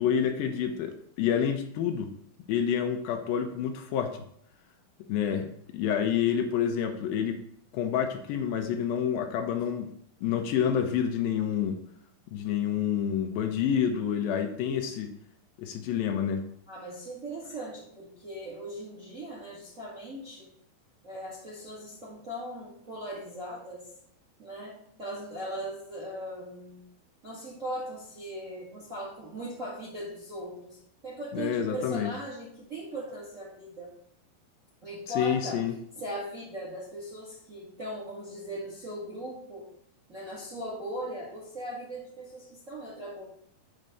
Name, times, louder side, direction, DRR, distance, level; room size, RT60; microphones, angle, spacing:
voice 1, 0.0-2.1 2.5-4.2 5.1-5.5 5.7-7.4 7.7-9.9 10.2-11.8 12.3-15.1 15.6-16.5 31.3-32.1 35.2-35.7, left 8 dB, 80° left, 5 dB, 2.4 m, -28 dB
voice 2, 16.7-20.5 21.0-23.9 24.4-26.8 27.2-33.9 34.8-35.6 35.9-39.6 40.1-43.2, right 1 dB, 30° right, -4 dB, 1.5 m, -39 dB
7.5 x 4.0 x 6.7 m, 0.68 s
omnidirectional pair, 4.3 m